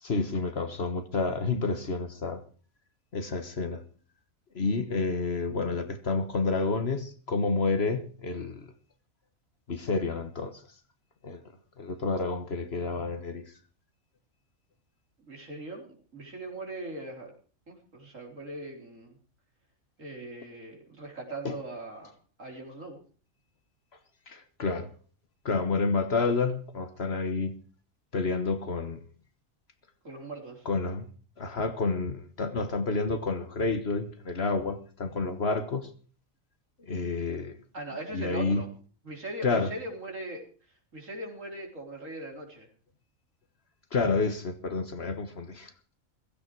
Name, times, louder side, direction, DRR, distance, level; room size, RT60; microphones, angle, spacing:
voice 1, 0.0-2.4 3.1-3.8 4.5-8.7 9.7-10.6 11.2-11.4 11.8-13.4 21.4-21.6 24.3-24.9 25.4-27.5 28.1-29.0 30.6-31.1 31.4-35.9 36.8-37.5 38.1-38.6 39.4-39.7 43.9-45.7, left 3 dB, 50° left, 1.6 m, -29 dB
voice 2, 15.3-17.3 17.7-19.2 20.0-22.1 22.4-23.0 30.0-30.7 37.7-38.7 39.0-40.4 40.9-42.7, right 2 dB, 70° right, 4.4 m, -40 dB
16.0 x 15.5 x 4.6 m
omnidirectional pair, 1.4 m